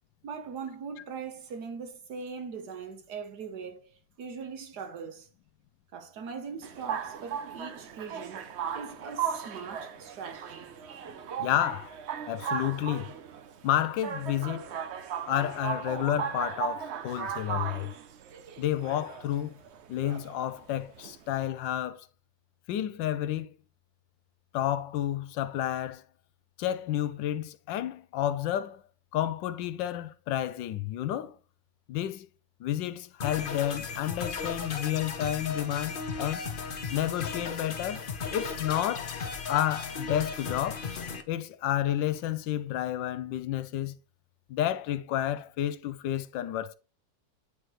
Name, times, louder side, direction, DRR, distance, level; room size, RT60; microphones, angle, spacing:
voice 1, 0.2-3.9 4.2-5.3 5.9-10.7, right 5 dB, 60° right, 1.5 m, -41 dB
sound 1, 6.6-21.5, right 7 dB, 80° right, 0.6 m, -37 dB
voice 2, 11.4-12.0 12.3-13.1 13.6-14.7 15.3-17.9 18.6-19.6 19.9-22.1 22.7-23.5 24.5-26.0 26.6-28.8 29.1-31.4 31.9-32.3 32.6-36.5 36.9-39.2 39.5-40.9 41.3-44.0 44.5-46.8, left 12 dB, 80° left, 1.3 m, -30 dB
sound 2, 33.2-41.2, left 5 dB, 50° left, 0.6 m, -36 dB
10.0 x 4.6 x 3.0 m
omnidirectional pair, 2.0 m